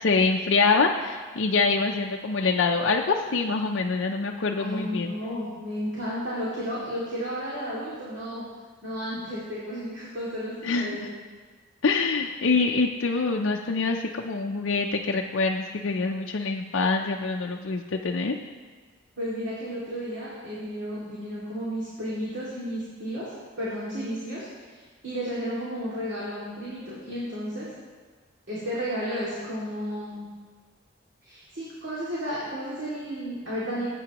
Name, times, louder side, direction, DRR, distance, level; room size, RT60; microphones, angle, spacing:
voice 1, 0.0-5.1 10.6-10.9 11.8-18.4, left 4 dB, 65° left, 1 dB, 0.5 m, -25 dB
voice 2, 4.6-8.4 8.8-11.2 19.2-23.3 23.6-27.7 28.5-30.2 31.2-33.9, equal, 55° right, -8 dB, 2.4 m, -33 dB
16.5 x 8.4 x 3.0 m, 1.4 s
head